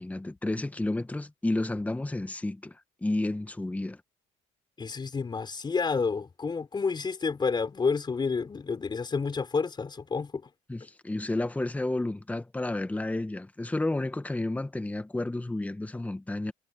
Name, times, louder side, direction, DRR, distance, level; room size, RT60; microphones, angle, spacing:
voice 1, 0.0-4.0 10.7-16.5, left 2 dB, 10° left, 1.5 m, -31 dB
voice 2, 4.8-10.5, left 5 dB, 30° left, 6.2 m, -29 dB
supercardioid pair, 80°, 16 cm